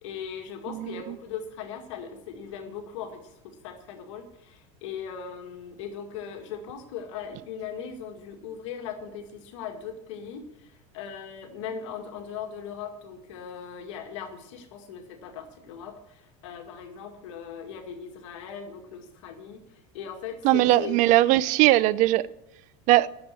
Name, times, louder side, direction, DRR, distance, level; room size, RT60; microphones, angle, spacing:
voice 1, 0.0-21.0, left 7 dB, 85° left, 5 dB, 2.0 m, -39 dB
voice 2, 20.4-22.2 22.9-23.1, right 16 dB, 55° right, 18 dB, 0.6 m, -20 dB
10.5 x 7.2 x 9.5 m, 0.83 s
supercardioid pair, 135°, 15 cm